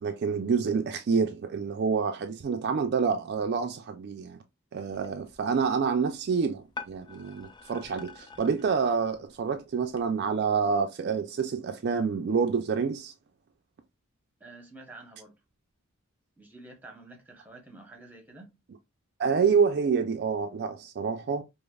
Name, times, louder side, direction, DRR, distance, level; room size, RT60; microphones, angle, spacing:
voice 1, 0.0-4.4 4.7-13.1 19.2-21.4, right 5 dB, 50° right, 0.3 m, -27 dB
sound 1, 4.9-10.1, left 4 dB, 20° left, 0.4 m, -48 dB
voice 2, 14.4-15.4 16.4-18.5, right 2 dB, 10° right, 0.8 m, -49 dB
5.0 x 2.0 x 2.2 m
head